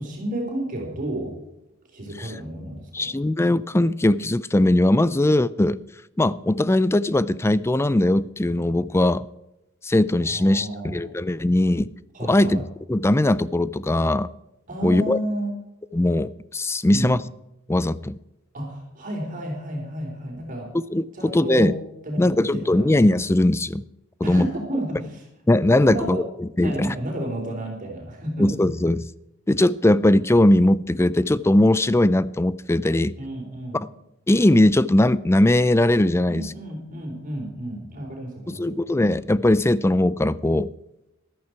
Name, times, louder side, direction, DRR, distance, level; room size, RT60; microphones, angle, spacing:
voice 1, 0.0-1.4 1.9-3.1 10.2-11.1 12.1-12.6 14.7-15.5 16.9-17.2 18.5-20.8 21.1-21.7 22.0-22.9 24.2-25.2 25.8-26.2 26.6-28.5 33.2-33.9 36.3-38.8, right 1 dB, 40° right, 4.1 m, -31 dB
voice 2, 2.9-5.8 6.2-9.3 9.8-11.9 12.3-12.6 12.9-14.3 14.8-15.2 15.9-17.2 17.7-18.2 20.9-21.7 22.2-23.8 24.2-24.5 25.5-27.0 28.4-29.1 29.5-33.1 34.3-36.4 38.5-40.7, left 1 dB, 10° left, 0.4 m, -20 dB
14.0 x 12.5 x 4.7 m
head